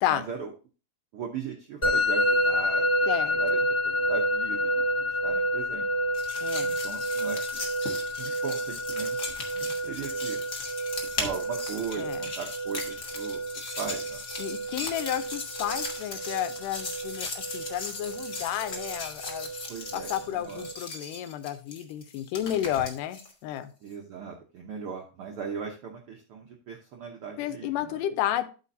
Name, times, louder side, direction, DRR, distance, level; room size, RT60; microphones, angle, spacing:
voice 1, 0.1-0.5 1.1-2.9 3.4-3.6 3.8-5.9 6.6-7.7 8.2-9.2 9.5-10.4 11.2-14.2 19.7-20.6 23.8-28.0, right 6 dB, 75° right, 1 dB, 1.2 m, -38 dB
Musical instrument, 1.8-20.7, equal, 20° left, 2.0 m, -30 dB
voice 2, 3.1-3.4 6.4-6.7 12.0-12.3 14.4-19.5 19.9-23.7 27.4-28.4, left 12 dB, 85° left, 12 dB, 2.2 m, -31 dB
sound 1, 6.1-23.3, left 3 dB, 50° left, 1.0 m, -38 dB
12.5 x 5.1 x 2.6 m, 0.35 s
omnidirectional pair, 3.7 m